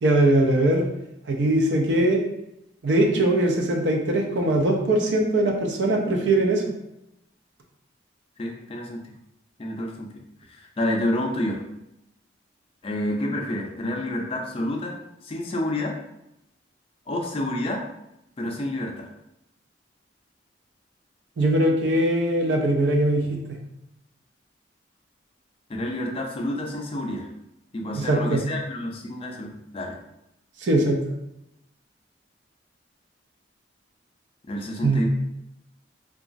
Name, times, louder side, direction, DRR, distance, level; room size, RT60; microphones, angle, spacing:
voice 1, 0.0-0.8 1.3-2.2 2.8-6.6 21.4-23.4 27.9-28.4 30.6-31.0 34.8-35.1, right 1 dB, 70° right, 2 dB, 0.5 m, -21 dB
voice 2, 8.4-9.0 9.6-10.1 10.5-11.6 12.8-16.0 17.1-17.8 18.4-19.1 25.7-27.3 27.7-29.9 34.5-35.1, left 1 dB, 30° left, 1 dB, 0.4 m, -29 dB
2.9 x 2.3 x 2.5 m, 0.84 s
head